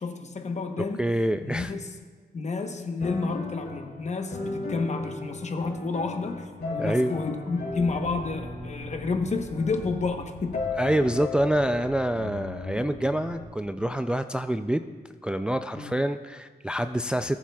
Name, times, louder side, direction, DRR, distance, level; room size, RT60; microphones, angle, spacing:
voice 1, 0.0-1.1 1.4-1.9 2.3-10.6 15.8-15.9, left 3 dB, 45° left, 5 dB, 1.0 m, -30 dB
voice 2, 1.0-1.7 6.8-7.2 10.8-14.8 15.2-17.4, right 1 dB, 5° right, 9 dB, 0.3 m, -26 dB
sound 1, 3.0-13.4, left 3 dB, 80° left, 2.7 m, -37 dB
Aircraft, 7.7-14.0, left 1 dB, 20° left, 1.1 m, -47 dB
18.5 x 7.3 x 2.3 m, 1.5 s
cardioid pair, 85°, 17 cm